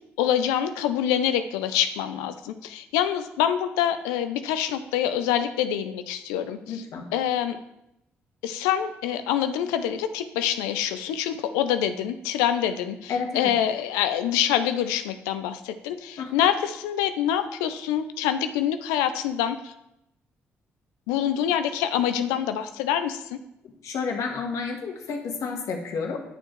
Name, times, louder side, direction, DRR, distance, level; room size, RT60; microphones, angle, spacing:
voice 1, 0.2-6.8 7.1-7.6 8.4-19.7 21.1-23.4, left 10 dB, 85° left, 10 dB, 0.5 m, -26 dB
voice 2, 6.7-7.1 13.1-13.5 16.2-16.3 23.8-26.2, left 5 dB, 70° left, 2 dB, 1.4 m, -30 dB
9.4 x 6.4 x 3.2 m, 0.84 s
hypercardioid pair, 50°, 6 cm